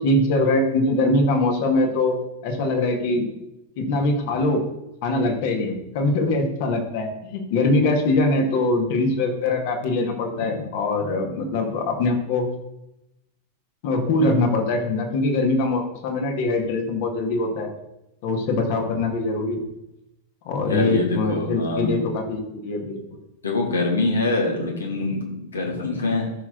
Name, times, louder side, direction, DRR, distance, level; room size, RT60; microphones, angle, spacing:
voice 1, 0.0-2.2 2.4-3.3 3.8-4.6 5.0-12.5 13.8-17.7 18.2-19.7 20.5-23.0, left 2 dB, 50° left, 3 dB, 2.2 m, -22 dB
voice 2, 20.7-22.0 23.4-26.3, left 2 dB, 70° left, 0 dB, 2.5 m, -24 dB
14.0 x 6.4 x 4.0 m, 0.87 s
figure-of-eight pair, 90°, 0 cm